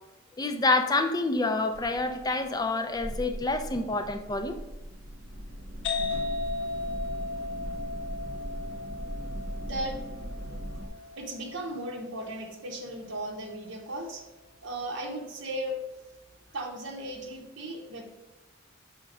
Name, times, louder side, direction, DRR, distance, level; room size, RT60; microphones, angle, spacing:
voice 1, 0.4-4.5, left 3 dB, 20° left, 6 dB, 0.5 m, -27 dB
sound 1, 1.7-10.9, right 1 dB, 90° right, 0.9 m, -39 dB
sound 2, 5.8-13.3, left 3 dB, 60° left, 1.2 m, -36 dB
voice 2, 9.6-10.0 11.2-14.2 14.6-15.8 16.5-18.0, right 1 dB, 60° right, 0 dB, 0.9 m, -36 dB
5.6 x 3.6 x 5.3 m, 1.0 s
head